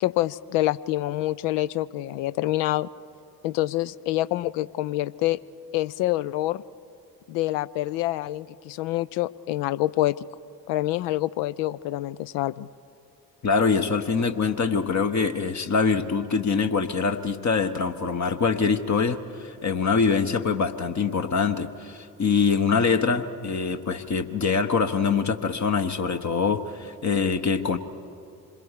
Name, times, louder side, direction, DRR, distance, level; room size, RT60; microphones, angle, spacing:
voice 1, 0.0-2.9 3.4-5.4 5.7-6.6 7.3-10.2 10.7-12.7, left 16 dB, 60° left, 18 dB, 0.6 m, -26 dB
voice 2, 13.4-27.8, left 5 dB, 35° left, 7 dB, 1.2 m, -24 dB
26.5 x 21.5 x 4.9 m, 2.6 s
figure-of-eight pair, 45°, 49 cm